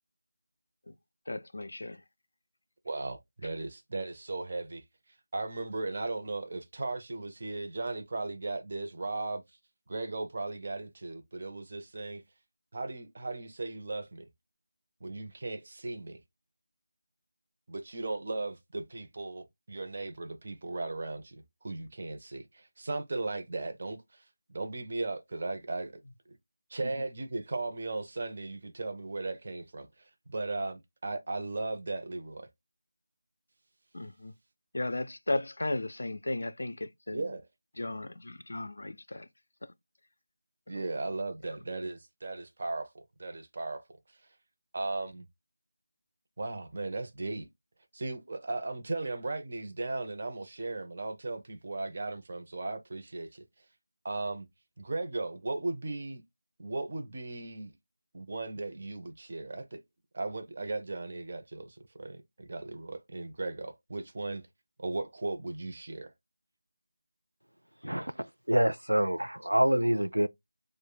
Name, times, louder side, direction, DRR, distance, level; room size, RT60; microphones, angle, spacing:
voice 1, 1.3-2.0 33.9-34.3 34.7-37.4 37.8-39.3, left 2 dB, 60° left, 0.3 m, -35 dB
voice 2, 2.8-4.8 5.3-9.4 9.9-12.2 12.7-14.2 15.0-16.2 17.7-24.2 24.5-26.0 26.7-29.9 30.3-32.5 37.1-37.5 40.7-44.0 44.7-45.2 46.4-47.5 47.9-53.4 54.0-54.5 54.8-56.2 56.6-57.7 58.1-59.8 60.1-64.4 64.8-66.1, right 2 dB, 40° right, 0.6 m, -37 dB
voice 3, 67.8-70.3, right 1 dB, 85° right, 0.3 m, -27 dB
4.6 x 2.1 x 2.2 m
figure-of-eight pair, 165°, 0 cm